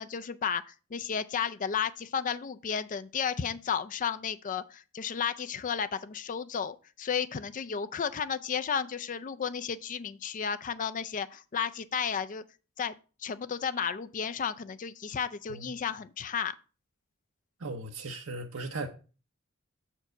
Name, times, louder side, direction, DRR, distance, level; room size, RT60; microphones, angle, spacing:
voice 1, 0.0-12.4 12.8-12.9 13.2-16.5, left 7 dB, 40° left, 0.4 m, -33 dB
voice 2, 15.5-15.8 17.6-18.9, right 2 dB, 70° right, 0.7 m, -37 dB
7.0 x 4.5 x 5.0 m
head